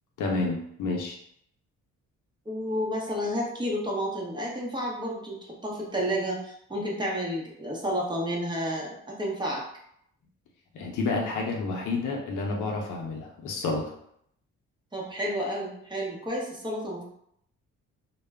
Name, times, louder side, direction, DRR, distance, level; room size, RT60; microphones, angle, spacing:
voice 1, 0.2-1.2 10.7-13.9, left 3 dB, 80° left, 0 dB, 0.7 m, -30 dB
voice 2, 2.5-9.6 14.9-17.0, equal, 15° right, -4 dB, 0.8 m, -31 dB
2.2 x 2.1 x 3.4 m, 0.71 s
cardioid pair, 90°, 30 cm